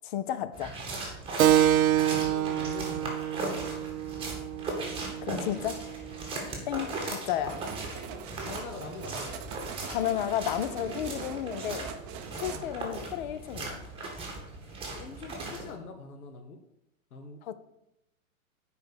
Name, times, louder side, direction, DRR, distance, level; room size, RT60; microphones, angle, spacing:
voice 1, 0.0-0.8 5.2-5.8 6.7-7.6 9.9-11.9 12.4-13.8 17.4-17.6, left 11 dB, 35° left, 13 dB, 0.5 m, -32 dB
sound 1, 0.5-15.7, right 2 dB, 10° right, 2.1 m, -38 dB
Keyboard (musical), 1.4-6.5, right 11 dB, 70° right, 0.6 m, -27 dB
voice 2, 2.0-3.4 5.3-5.6 6.5-6.7 8.4-9.4 12.5-12.8 14.9-16.6 17.1-17.4, left 4 dB, 80° left, 5 dB, 1.1 m, -44 dB
sound 2, 7.5-12.6, right 8 dB, 30° right, 0.6 m, -42 dB
6.8 x 5.0 x 6.4 m, 0.85 s
hypercardioid pair, 125°, 43 cm